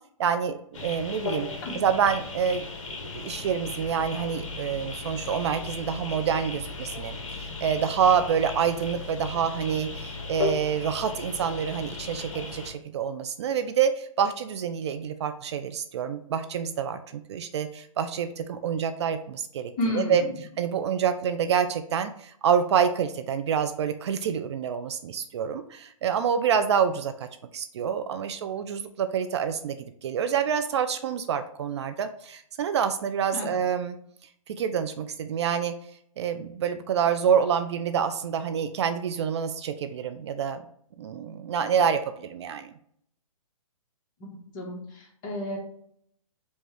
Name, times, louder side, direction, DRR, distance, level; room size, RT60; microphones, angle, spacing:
voice 1, 0.2-1.5 1.7-20.2 20.6-27.3 27.5-34.0 34.5-35.7 36.2-40.6 41.0-42.7, right 7 dB, 50° right, 10 dB, 0.4 m, -27 dB
sound 1, 0.7-12.7, left 4 dB, 60° left, 1.0 m, -36 dB
voice 2, 19.8-20.3 33.3-33.6 44.2-45.6, left 1 dB, 30° left, -1 dB, 1.3 m, -32 dB
5.1 x 2.3 x 3.3 m, 0.66 s
hypercardioid pair, 140°, 18 cm